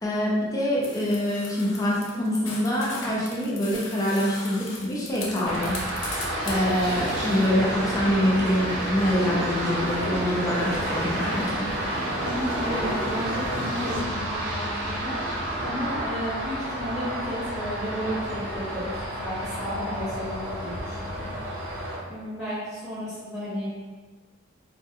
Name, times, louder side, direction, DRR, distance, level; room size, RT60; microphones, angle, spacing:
voice 1, 0.0-5.8 6.2-11.7, equal, 20° left, -5 dB, 0.5 m, -25 dB
sound 1, 0.8-7.5, left 3 dB, 75° left, 0.5 m, -39 dB
sound 2, 5.4-22.0, right 1 dB, 70° right, 0.7 m, -31 dB
sound 3, 6.8-14.0, equal, 40° right, 0.7 m, -33 dB
voice 2, 12.2-15.1 15.6-21.3 22.0-23.7, equal, ahead, -14 dB, 0.8 m, -33 dB
2.2 x 2.1 x 2.9 m, 1.3 s
head